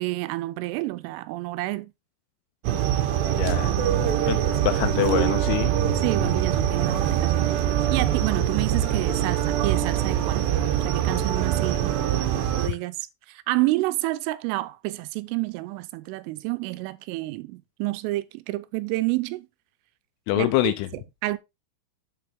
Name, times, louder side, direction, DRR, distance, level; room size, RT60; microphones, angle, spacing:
voice 1, 0.0-1.9 5.9-7.6 7.9-10.5 10.8-12.0 12.6-13.0 13.3-19.5 20.4-21.4, right 20 dB, 85° right, 3.2 m, -29 dB
sound 1, 2.6-12.7, right 10 dB, 70° right, 3.0 m, -23 dB
voice 2, 3.2-3.7 4.3-5.7 20.3-20.9, left 13 dB, 85° left, 3.2 m, -25 dB
7.6 x 5.8 x 3.5 m
omnidirectional pair, 5.6 m